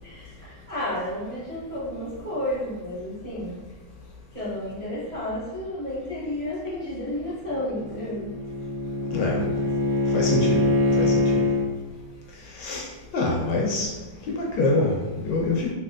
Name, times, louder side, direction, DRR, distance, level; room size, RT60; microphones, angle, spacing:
voice 1, 0.0-3.7 4.3-8.4, left 1 dB, 25° right, -11 dB, 0.7 m, -32 dB
Bowed string instrument, 7.8-11.7, left 2 dB, 75° right, 1.2 m, -24 dB
voice 2, 9.0-9.5 10.1-10.7 11.0-11.4 12.6-12.9 13.1-13.9 14.3-15.7, left 2 dB, 75° left, -2 dB, 1.2 m, -25 dB
3.2 x 2.8 x 2.4 m, 1.2 s
omnidirectional pair, 2.1 m